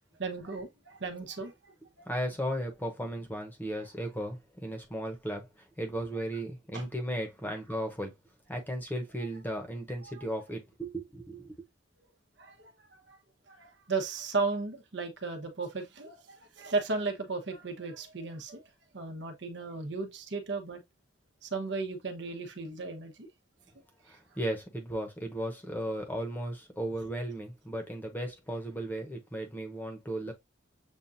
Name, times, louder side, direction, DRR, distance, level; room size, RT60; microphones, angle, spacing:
voice 1, 0.2-2.1 6.7-6.8 10.0-10.1 12.4-13.2 13.5-18.6 18.9-20.8 21.4-23.3, right 4 dB, 70° right, 1.0 m, -35 dB
voice 2, 2.1-8.1 8.5-11.5 24.0-30.3, right 1 dB, 10° left, 0.9 m, -36 dB
7.2 x 2.4 x 2.6 m
head